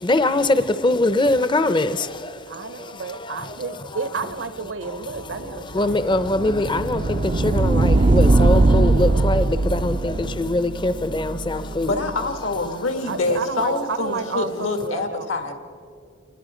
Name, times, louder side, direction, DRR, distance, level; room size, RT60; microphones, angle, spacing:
voice 1, 0.0-3.8 5.5-12.0, left 2 dB, 25° left, 0.6 m, -23 dB
voice 2, 2.5-6.3 10.1-10.4 13.0-15.3, right 4 dB, 65° right, 0.8 m, -31 dB
sound 1, 5.4-12.3, right 2 dB, 35° right, 0.4 m, -20 dB
voice 3, 11.8-15.5, left 2 dB, 80° left, 1.8 m, -25 dB
27.5 x 20.5 x 5.1 m
head